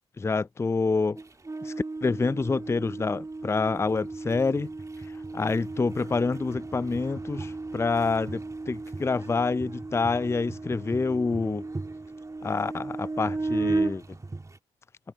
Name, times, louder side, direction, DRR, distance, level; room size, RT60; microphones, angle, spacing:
voice 1, 0.2-1.2 1.6-1.7 2.0-4.7 5.3-11.6 12.4-14.0, left 4 dB, 20° left, 0.4 m, -27 dB
sound 1, 1.2-14.6, right 3 dB, 25° right, 1.6 m, -35 dB
hypercardioid pair, 40°, 13 cm